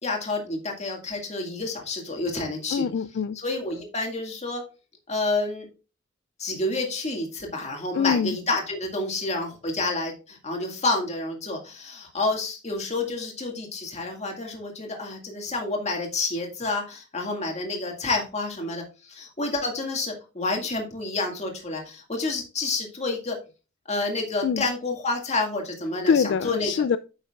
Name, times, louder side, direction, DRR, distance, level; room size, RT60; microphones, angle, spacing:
voice 1, 0.0-2.9 3.3-4.6 5.1-5.7 6.4-23.4 23.9-26.8, left 2 dB, 35° left, 2.1 m, -29 dB
voice 2, 2.7-3.4 7.9-8.4 24.4-24.6 26.1-27.0, left 6 dB, 65° left, 0.3 m, -24 dB
9.7 x 6.8 x 2.4 m
head